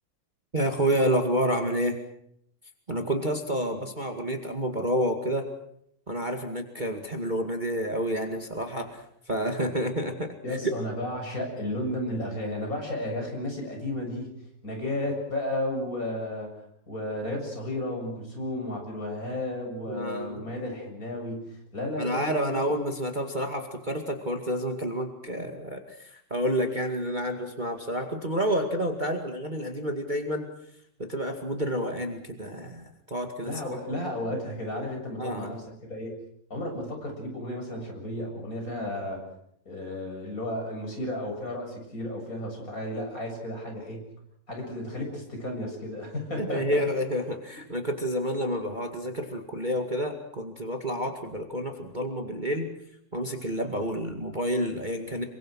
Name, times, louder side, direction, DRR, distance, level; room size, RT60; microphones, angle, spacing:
voice 1, 0.5-1.9 2.9-5.4 6.1-10.7 19.9-20.4 22.0-30.5 31.0-33.5 35.2-35.5 46.4-52.7 53.1-55.2, equal, 45° right, 3 dB, 0.6 m, -29 dB
voice 2, 10.4-14.3 14.6-16.5 16.9-22.6 33.4-36.2 36.5-39.2 39.7-44.0 44.5-46.8, left 1 dB, 20° left, 1 dB, 7.6 m, -33 dB
27.5 x 24.0 x 6.4 m, 0.71 s
omnidirectional pair, 5.0 m